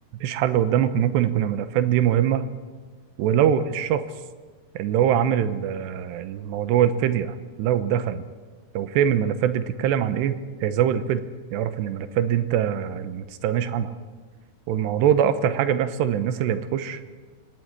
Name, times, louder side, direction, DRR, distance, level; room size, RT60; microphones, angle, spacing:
voice 1, 0.2-2.5 3.2-4.1 4.7-8.3 8.7-11.2 11.5-13.9 14.7-17.0, right 9 dB, 90° right, 10 dB, 3.2 m, -23 dB
28.5 x 17.0 x 9.9 m, 1.4 s
omnidirectional pair, 4.9 m